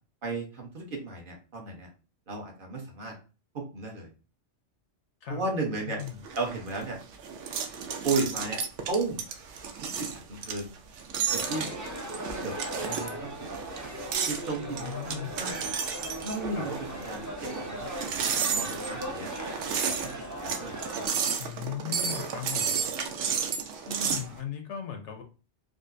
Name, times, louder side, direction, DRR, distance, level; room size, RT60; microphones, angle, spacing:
voice 1, 0.2-1.9 2.3-3.1 3.5-4.1 5.3-6.0 6.3-7.0 8.0-8.6 8.9-9.2 9.8-10.7 11.3-11.7 12.4-13.6 14.3-15.7 16.2-17.9 18.5-19.3 19.8-20.8 21.6-21.8, right 3 dB, 50° right, 1.1 m, -34 dB
voice 2, 5.8-6.2 14.6-15.3 16.5-16.7 21.4-22.8 23.9-25.2, left 9 dB, 75° left, 0.9 m, -37 dB
sound 1, 6.0-24.3, right 7 dB, 85° right, 1.0 m, -32 dB
sound 2, 11.3-21.1, right 1 dB, 20° right, 0.6 m, -38 dB
5.0 x 2.1 x 2.5 m
omnidirectional pair, 1.2 m